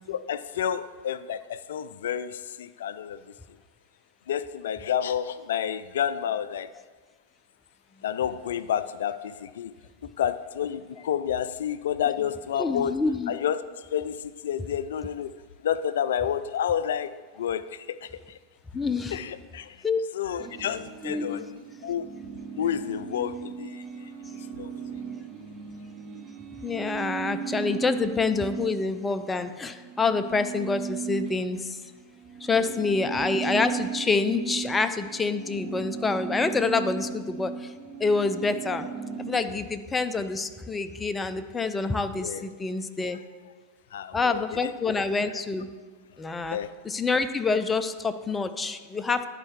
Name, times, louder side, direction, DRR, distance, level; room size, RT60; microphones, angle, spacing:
voice 1, 0.1-3.2 4.3-6.7 8.0-9.7 10.0-13.0 13.3-15.3 15.6-17.1 17.4-18.4 19.1-19.8 20.1-21.5 21.8-22.1 22.6-24.1 24.6-24.7 32.7-32.8 42.1-42.4 43.9-44.7 46.5-46.7, left 9 dB, 70° left, 15 dB, 0.3 m, -30 dB
voice 2, 12.6-13.3 18.7-19.2 19.8-20.0 21.0-21.4 26.6-31.8 32.4-37.7 38.0-38.9 39.2-43.2 44.1-45.7 46.2-46.6 46.8-49.3, left 4 dB, 15° left, 10 dB, 0.5 m, -27 dB
sound 1, 20.4-29.3 29.6-39.4, right 7 dB, 40° right, 0.6 m, -37 dB
11.0 x 4.5 x 4.5 m, 1.4 s
figure-of-eight pair, 95°, 0 cm